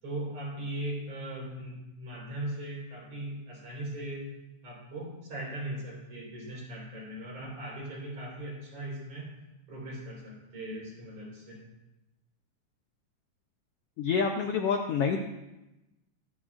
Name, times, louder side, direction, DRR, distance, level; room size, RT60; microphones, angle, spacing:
voice 1, 0.0-4.3 4.6-9.4 9.7-11.6, right 1 dB, 50° right, -4 dB, 5.2 m, -39 dB
voice 2, 14.0-15.2, left 6 dB, 90° left, 3 dB, 1.3 m, -27 dB
24.5 x 8.9 x 2.5 m, 0.99 s
omnidirectional pair, 3.6 m